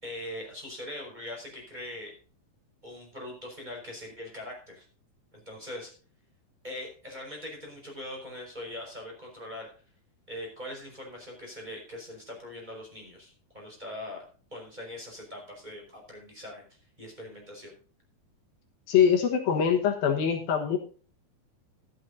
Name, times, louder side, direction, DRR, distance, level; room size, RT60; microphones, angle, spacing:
voice 1, 0.0-2.1 2.8-4.9 5.3-5.9 6.6-9.7 10.3-14.2 14.5-16.6 17.0-17.7, left 1 dB, 10° right, -2 dB, 5.3 m, -41 dB
voice 2, 18.9-20.8, left 8 dB, 70° left, 2 dB, 3.1 m, -23 dB
14.0 x 13.0 x 2.7 m, 0.39 s
omnidirectional pair, 4.4 m